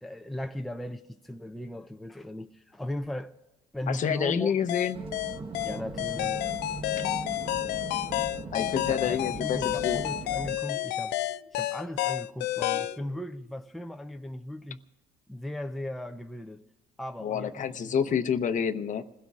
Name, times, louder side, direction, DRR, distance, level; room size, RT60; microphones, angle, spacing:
voice 1, 0.0-3.3 3.7-4.5 5.6-6.4 8.8-11.2 11.5-14.8 15.3-16.6 17.0-18.2, left 1 dB, ahead, 0.5 m, -37 dB
voice 2, 3.9-5.0 7.0-7.1 7.4-7.6 8.5-9.6 9.8-10.0 17.2-19.0, left 7 dB, 50° left, 0.8 m, -28 dB
sound 1, 4.7-13.0, left 15 dB, 85° left, 0.4 m, -30 dB
sound 2, 4.9-10.6, right 3 dB, 35° right, 1.2 m, -39 dB
sound 3, 10.6-11.5 12.7-13.6, right 7 dB, 70° right, 3.3 m, -50 dB
28.5 x 16.5 x 2.5 m
cardioid pair, 110°, 17 cm